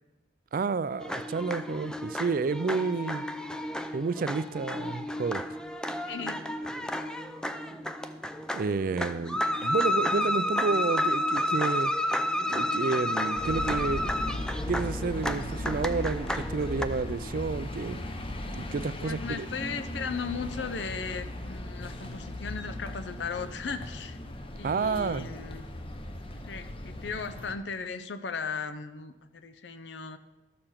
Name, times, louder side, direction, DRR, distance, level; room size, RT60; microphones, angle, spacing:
voice 1, 0.5-3.2 3.9-5.4 8.5-11.9 12.5-14.3 14.7-18.0 18.5-19.5 24.6-25.3, right 4 dB, 50° right, 16 dB, 0.4 m, -30 dB
sound 1, 1.0-16.8, left 1 dB, 5° left, 0.5 m, -31 dB
voice 2, 6.1-6.4 9.2-9.4 19.0-24.2 24.5-25.7 26.5-30.2, left 5 dB, 85° left, 10 dB, 0.7 m, -37 dB
sound 2, 13.3-27.5, left 1 dB, 30° left, 0.8 m, -37 dB
13.0 x 6.9 x 5.7 m, 1.1 s
head